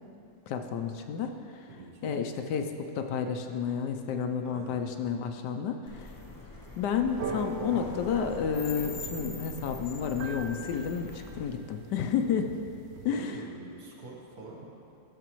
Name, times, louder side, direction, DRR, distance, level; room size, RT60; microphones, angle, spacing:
voice 1, 0.5-1.7 2.0-6.1 6.8-12.5 13.0-13.4, left 7 dB, 75° left, 6 dB, 1.1 m, -31 dB
voice 2, 1.7-2.2 4.4-4.8 13.1-14.7, right 3 dB, 60° right, -3 dB, 1.7 m, -45 dB
sound 1, 5.9-11.5, left 2 dB, 25° left, 0.4 m, -43 dB
sound 2, 7.1-13.1, right 4 dB, 85° right, 0.5 m, -41 dB
14.0 x 6.7 x 3.0 m, 2.6 s
omnidirectional pair, 1.9 m